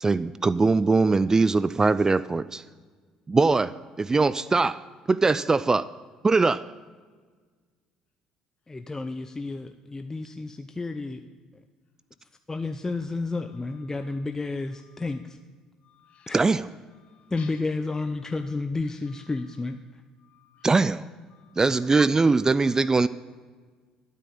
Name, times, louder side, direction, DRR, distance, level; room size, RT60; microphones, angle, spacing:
voice 1, 0.0-2.6 3.3-4.8 5.1-5.9 6.2-6.6 16.3-16.6 20.6-21.0 21.6-23.1, right 3 dB, 25° right, 16 dB, 0.4 m, -21 dB
voice 2, 8.7-11.2 12.5-15.4 16.3-16.4 17.3-19.8, left 3 dB, 20° left, 8 dB, 0.6 m, -31 dB
voice 3, 15.8-16.3 17.0-17.5 20.2-20.7 21.3-21.6 22.6-22.9, left 7 dB, 50° left, 3 dB, 2.3 m, -55 dB
12.0 x 9.2 x 5.5 m, 1.5 s
hypercardioid pair, 65°, 3 cm